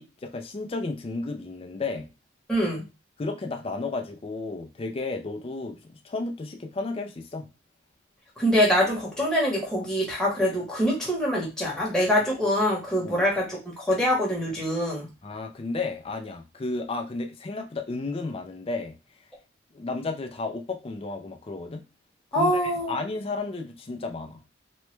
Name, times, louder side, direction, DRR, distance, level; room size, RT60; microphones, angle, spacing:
voice 1, 0.0-2.1 3.2-7.5 13.0-13.3 15.2-19.0 19.7-21.8 22.4-24.4, left 3 dB, 30° left, 3 dB, 0.4 m, -33 dB
voice 2, 2.5-2.8 8.4-15.1 22.3-22.9, equal, 5° left, -4 dB, 0.9 m, -24 dB
3.0 x 2.2 x 3.1 m, 0.28 s
head